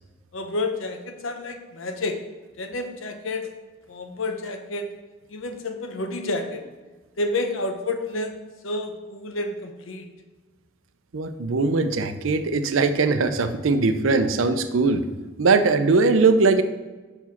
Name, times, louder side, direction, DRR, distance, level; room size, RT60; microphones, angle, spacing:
voice 1, 0.3-2.2 2.6-3.5 3.9-4.9 5.3-6.6 7.2-8.4 8.6-10.1, left 2 dB, 75° left, 6 dB, 0.8 m, -29 dB
voice 2, 11.1-15.1 15.4-16.6, right 4 dB, 80° right, 9 dB, 0.6 m, -20 dB
5.4 x 4.7 x 5.8 m, 1.3 s
head